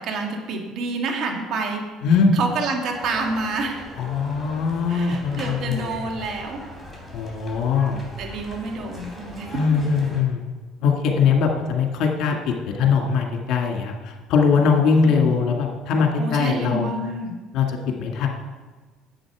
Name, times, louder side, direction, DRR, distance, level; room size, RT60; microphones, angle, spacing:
voice 1, 0.0-1.8 2.3-3.9 4.9-6.6 8.2-9.5 16.2-17.3, right 3 dB, 60° right, 2 dB, 2.0 m, -28 dB
voice 2, 2.0-2.4 4.0-5.9 7.1-8.0 9.5-10.4 10.8-16.9 17.5-18.3, left 5 dB, 65° left, 2 dB, 1.9 m, -21 dB
sound 1, 2.9-10.2, equal, 5° right, 3.6 m, -39 dB
10.5 x 7.9 x 4.9 m, 1.3 s
supercardioid pair, 95°, 0 cm